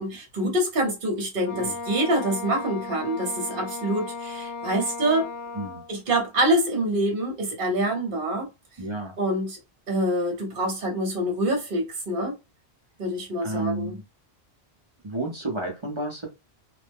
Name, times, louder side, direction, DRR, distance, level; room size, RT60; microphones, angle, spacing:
voice 1, 0.0-5.3 5.9-8.5 9.2-9.6 9.9-12.4 13.0-14.0, right 1 dB, 55° right, 1.1 m, -26 dB
Wind instrument woodwind instrument, 1.4-5.9, left 3 dB, 80° left, 0.9 m, -36 dB
voice 2, 8.8-9.1 13.4-14.0 15.0-16.3, right 2 dB, 30° right, 0.7 m, -31 dB
2.4 x 2.0 x 3.4 m
omnidirectional pair, 1.1 m